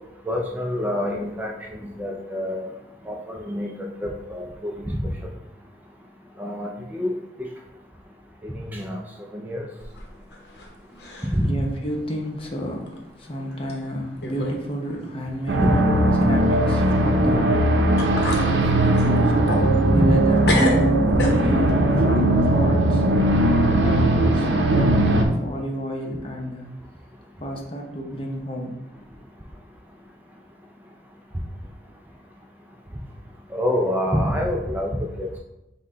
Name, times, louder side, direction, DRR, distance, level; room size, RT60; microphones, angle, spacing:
voice 1, 0.3-2.7 3.1-3.7 4.0-5.0 6.4-7.1 8.4-9.0 9.3-9.7 11.3-11.5 15.6-15.7 19.9-20.1 21.1-21.2 33.5-35.4, equal, 10° right, 0 dB, 0.3 m, -26 dB
sound 1, 9.8-10.7 11.0-11.5 11.9-12.0 12.9-13.0 13.7-13.8 14.2-14.6 14.9-15.0 17.5-17.6 18.0-18.5 18.9-20.2 20.4-21.7, left 1 dB, 65° left, 0.8 m, -28 dB
voice 2, 10.9-15.7 16.2-17.9 18.3-19.4 19.9-21.1 21.4-26.7 27.4-28.8, equal, 30° left, 1 dB, 0.7 m, -31 dB
sound 2, 15.5-25.2, right 1 dB, 90° right, 0.6 m, -19 dB
5.6 x 2.2 x 3.8 m, 0.94 s
head